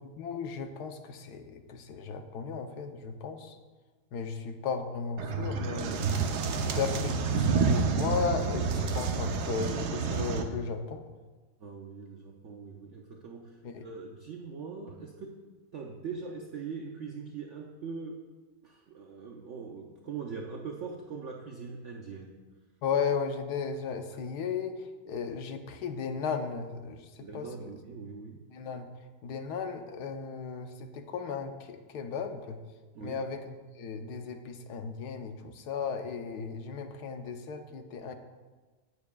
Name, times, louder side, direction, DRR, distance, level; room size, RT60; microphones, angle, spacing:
voice 1, 0.0-3.6 4.1-6.1 6.5-11.1 13.6-13.9 22.8-27.5 28.5-28.9 29.2-32.6 33.0-38.1, left 5 dB, 75° left, 7 dB, 1.3 m, -35 dB
sound 1, 5.2-10.4, right 5 dB, 75° right, 1.3 m, -29 dB
voice 2, 11.6-15.4 15.7-18.2 18.6-22.4 27.2-28.4 32.9-33.2, right 5 dB, 60° right, 1 dB, 0.8 m, -42 dB
16.5 x 7.2 x 2.3 m, 1.3 s
omnidirectional pair, 1.7 m